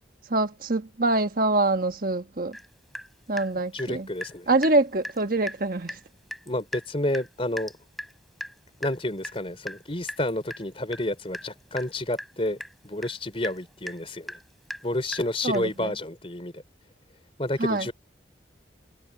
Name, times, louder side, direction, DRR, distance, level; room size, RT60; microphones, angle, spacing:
voice 1, 0.2-2.6 3.3-4.1 4.5-6.0 15.4-15.9 17.6-17.9, right 2 dB, 50° right, 1.3 m, -25 dB
Water tap faucet / Drip, 2.5-2.7 2.9-4.4 4.6-4.8 5.0-5.2 5.5-5.6 5.9-6.0 6.3-15.8, equal, ahead, 3.5 m, -39 dB
voice 2, 3.7-4.5 6.5-7.7 8.8-12.6 12.8-14.4 14.8-16.6 17.4-17.9, left 1 dB, 30° left, 3.7 m, -30 dB
head